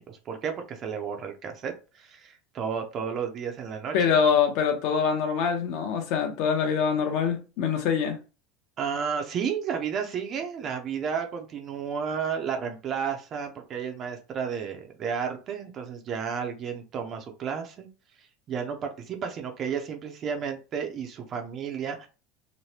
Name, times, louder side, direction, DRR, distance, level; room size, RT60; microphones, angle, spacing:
voice 1, 0.0-4.1 8.8-17.9 18.2-22.1, right 7 dB, 30° right, 0.4 m, -32 dB
voice 2, 3.9-8.2, left 6 dB, 55° left, 0.8 m, -24 dB
3.1 x 2.1 x 2.8 m
supercardioid pair, 160°, 0 cm